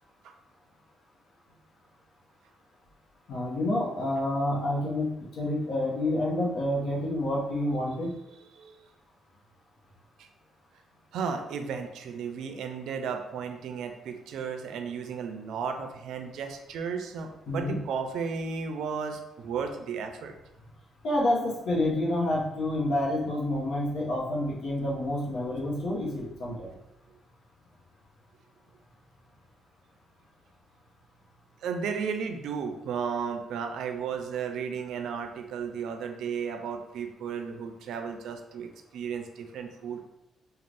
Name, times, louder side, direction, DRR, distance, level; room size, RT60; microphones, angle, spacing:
voice 1, 3.3-5.1 5.4-8.1 17.5-17.8 21.0-26.7, left 1 dB, 70° left, -3 dB, 0.9 m, -28 dB
voice 2, 11.1-20.3 31.6-40.1, right 6 dB, 80° right, 5 dB, 0.4 m, -34 dB
2.5 x 2.3 x 3.3 m, 0.89 s
cardioid pair, 90°, 0 cm